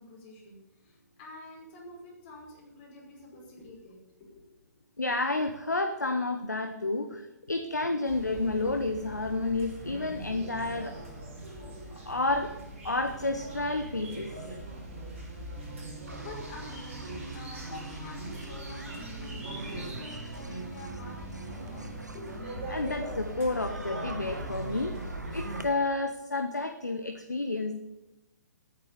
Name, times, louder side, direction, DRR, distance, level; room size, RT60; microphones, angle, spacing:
voice 1, 0.0-4.4 15.8-21.9 22.1-22.4 23.8-23.9, left 1 dB, 35° left, -3 dB, 5.5 m, -47 dB
voice 2, 5.0-11.0 11.9-12.5 12.8-14.6 17.7-17.8 22.7-27.8, left 2 dB, 80° left, 7 dB, 1.0 m, -30 dB
sound 1, 8.0-25.7, right 1 dB, 45° right, 5.2 m, -41 dB
sound 2, 15.6-22.4, right 9 dB, 15° right, 0.5 m, -48 dB
sound 3, 16.1-25.6, right 1 dB, 85° right, 1.1 m, -44 dB
10.0 x 9.6 x 7.1 m, 1.0 s
figure-of-eight pair, 120°, 9 cm